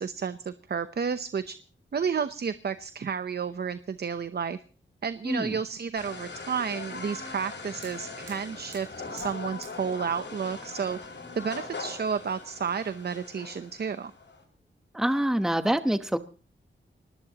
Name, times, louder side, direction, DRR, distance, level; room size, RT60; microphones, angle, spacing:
voice 1, 0.0-1.5 1.9-4.6 5.0-11.0 11.4-14.1, right 6 dB, 55° right, 11 dB, 0.8 m, -31 dB
sound 1, 5.9-14.4, left 3 dB, 65° left, 7.3 m, -41 dB
Fire, 7.3-12.7, right 4 dB, 80° right, 7.5 m, -54 dB
voice 2, 14.9-16.2, right 1 dB, ahead, 9 dB, 1.0 m, -25 dB
23.0 x 19.5 x 3.0 m, 0.37 s
wide cardioid pair, 90°, 20 cm